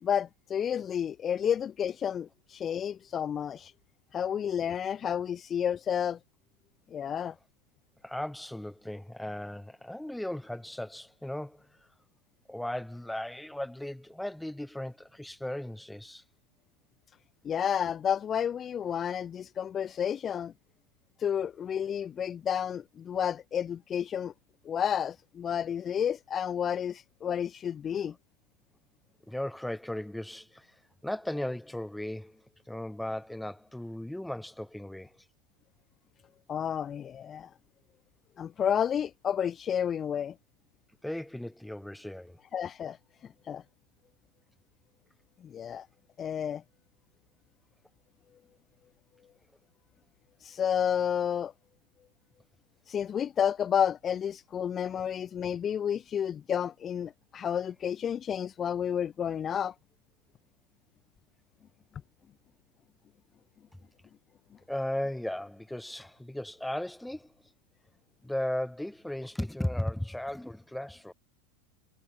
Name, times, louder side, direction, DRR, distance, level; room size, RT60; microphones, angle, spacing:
voice 1, 0.0-3.7 4.1-6.2 6.9-7.3 17.4-20.5 21.2-24.3 24.6-28.1 36.5-37.5 38.4-40.3 42.5-43.0 43.5-43.6 45.4-45.9 46.2-46.6 50.4-51.5 52.9-59.7, left 8 dB, 30° left, 2.5 m, -31 dB
voice 2, 8.0-11.7 12.5-16.2 29.3-30.7 31.0-35.1 41.0-42.4 64.7-67.3 68.2-71.1, left 1 dB, 5° left, 4.8 m, -36 dB
hypercardioid pair, 85°, 0 cm